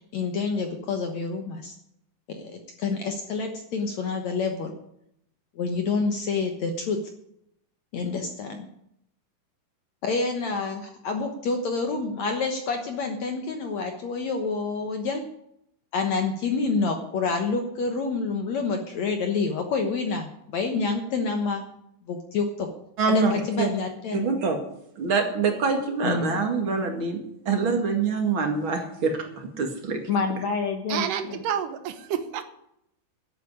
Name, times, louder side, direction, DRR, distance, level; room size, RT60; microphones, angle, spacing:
voice 1, 0.1-1.7 2.3-4.7 5.6-7.0 7.9-8.7 10.0-15.2 15.9-21.6 22.1-22.7 23.1-24.3 26.0-26.4 30.1-31.4, left 4 dB, 65° left, 5 dB, 1.8 m, -28 dB
voice 2, 23.0-23.3 23.6-23.7 24.1-24.6 25.0-27.2 27.5-30.0, right 4 dB, 40° right, 3 dB, 2.1 m, -25 dB
voice 3, 30.9-32.4, right 9 dB, 65° right, 10 dB, 2.4 m, -29 dB
12.0 x 8.4 x 9.8 m, 0.76 s
omnidirectional pair, 4.7 m